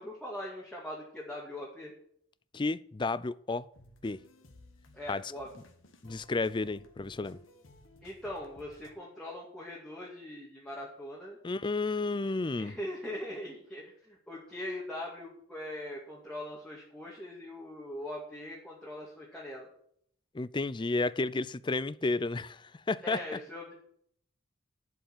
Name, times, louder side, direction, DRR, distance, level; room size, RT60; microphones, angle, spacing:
voice 1, 0.0-1.9 4.9-5.5 8.0-11.4 12.6-19.7 23.0-23.7, left 1 dB, 5° left, 2.2 m, -41 dB
voice 2, 2.5-3.7 4.0-4.2 5.1-5.2 6.0-7.4 11.4-12.7 20.3-23.4, left 3 dB, 20° left, 0.4 m, -32 dB
sound 1, 3.7-8.9, left 2 dB, 70° left, 1.8 m, -58 dB
11.5 x 5.6 x 8.9 m
head